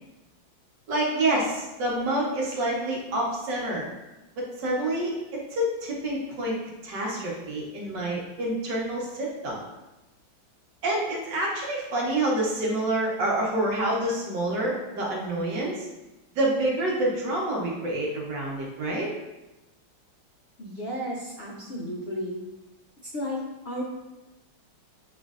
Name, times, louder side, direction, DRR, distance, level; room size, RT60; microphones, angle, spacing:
voice 1, 0.9-3.9 4.4-5.1 5.5-6.6 6.8-9.6 10.8-15.9 16.3-19.1, right 1 dB, 65° right, -3 dB, 1.5 m, -27 dB
voice 2, 20.6-22.4 23.1-23.8, equal, 85° left, -4 dB, 0.5 m, -33 dB
7.1 x 3.1 x 2.4 m, 1.0 s
omnidirectional pair, 2.2 m